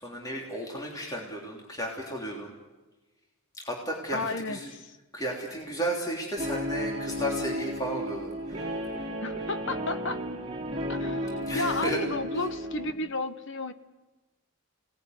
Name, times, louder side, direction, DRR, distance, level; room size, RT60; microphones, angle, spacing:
voice 1, 0.0-2.5 3.6-4.7 5.1-8.8 11.4-12.0, right 1 dB, 15° left, -2 dB, 3.3 m, -34 dB
voice 2, 4.1-5.0 9.2-10.2 10.9-13.7, left 2 dB, 55° left, 10 dB, 1.3 m, -33 dB
Guitar, 6.4-12.9, equal, 25° right, 3.6 m, -33 dB
27.0 x 19.0 x 9.5 m, 1.2 s
head